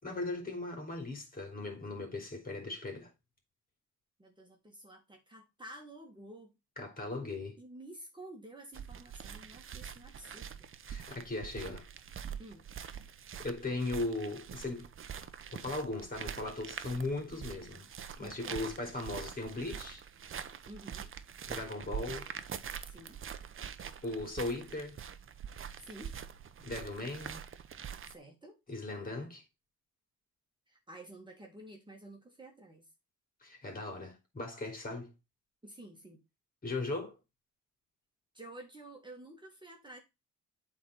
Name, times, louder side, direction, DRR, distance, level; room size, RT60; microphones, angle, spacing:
voice 1, 0.0-3.1 6.8-7.6 10.9-11.8 13.4-14.9 15.5-17.9 18.2-20.0 21.5-22.3 24.0-25.0 26.6-27.4 28.7-29.4 33.4-35.1 36.6-37.2, left 2 dB, 30° left, 3.6 m, -38 dB
voice 2, 4.2-6.5 7.1-7.2 7.6-10.7 12.4-12.7 18.2-18.6 20.7-21.1 22.9-23.2 25.8-26.2 28.1-28.6 30.7-32.9 35.6-36.2 38.3-40.0, right 1 dB, 15° right, 2.1 m, -51 dB
sound 1, 8.7-28.1, right 8 dB, 45° right, 0.9 m, -44 dB
8.4 x 4.0 x 4.4 m
cardioid pair, 90°, 30 cm